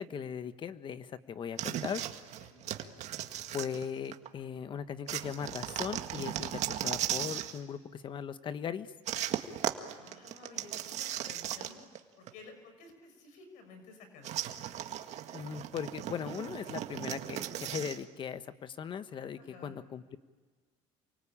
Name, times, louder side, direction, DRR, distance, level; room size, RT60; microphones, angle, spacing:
voice 1, 0.0-2.1 3.5-8.9 15.3-20.2, left 7 dB, 35° left, 12 dB, 1.3 m, -39 dB
sound 1, 1.6-4.3 5.1-7.6 9.1-12.0 12.3-12.4 14.2-18.0, right 12 dB, 55° right, 1.9 m, -37 dB
voice 2, 2.4-2.9 9.9-14.5 19.4-19.8, left 3 dB, 70° left, 7 dB, 6.3 m, -54 dB
28.5 x 24.0 x 8.8 m, 1.5 s
cardioid pair, 125°, 14 cm